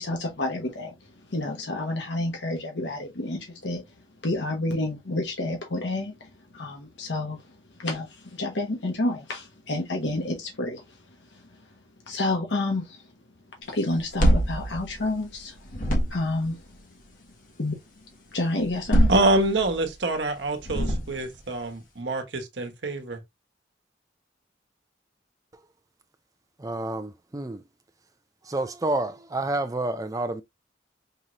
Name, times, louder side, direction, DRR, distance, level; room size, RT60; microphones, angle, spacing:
voice 1, 0.0-17.3 17.5-19.1, left 2 dB, 80° left, 1.2 m, -30 dB
sound 1, 13.9-15.4 15.7-16.5 18.6-19.8 20.6-21.4, equal, 50° left, 1.5 m, -24 dB
voice 2, 19.1-23.2, right 2 dB, 80° right, 1.1 m, -26 dB
voice 3, 26.6-27.6 28.4-30.4, right 2 dB, 20° right, 0.5 m, -29 dB
5.4 x 3.1 x 2.6 m
head